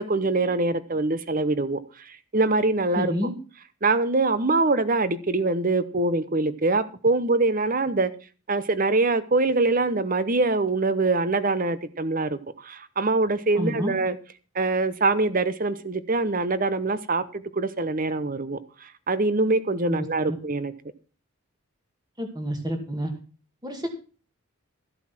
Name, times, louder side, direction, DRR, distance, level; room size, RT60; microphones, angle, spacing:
voice 1, 0.0-3.1 3.8-8.1 8.5-14.2 14.5-20.7, right 3 dB, 40° right, 0.9 m, -24 dB
voice 2, 3.0-3.4 13.6-13.9 19.9-20.4 22.2-23.1 23.6-23.9, equal, 20° right, 2.3 m, -29 dB
14.0 x 8.0 x 6.0 m
head